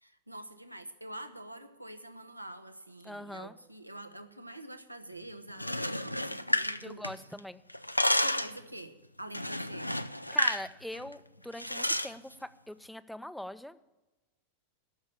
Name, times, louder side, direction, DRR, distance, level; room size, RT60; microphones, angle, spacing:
voice 1, 0.0-7.0 8.2-9.9, right 1 dB, 85° right, 8 dB, 0.9 m, -46 dB
voice 2, 3.0-3.6 6.8-7.6 10.3-13.8, left 1 dB, ahead, 14 dB, 0.5 m, -42 dB
sound 1, 5.5-7.4 7.7-8.6 9.3-10.7 10.9-11.1 11.6-12.1, left 1 dB, 90° left, 0.4 m, -30 dB
13.0 x 6.4 x 8.4 m, 1.1 s
figure-of-eight pair, 90°, 0 cm